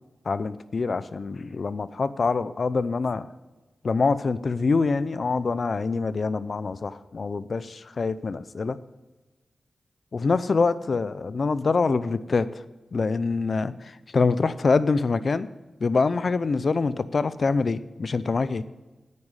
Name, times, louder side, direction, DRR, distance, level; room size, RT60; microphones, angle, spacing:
voice 1, 0.3-3.3 3.8-8.8 10.1-12.6 12.9-15.5 15.8-18.6, left 4 dB, 60° left, 15 dB, 0.6 m, -25 dB
9.8 x 9.6 x 4.8 m, 1.2 s
cardioid pair, 60°, 0 cm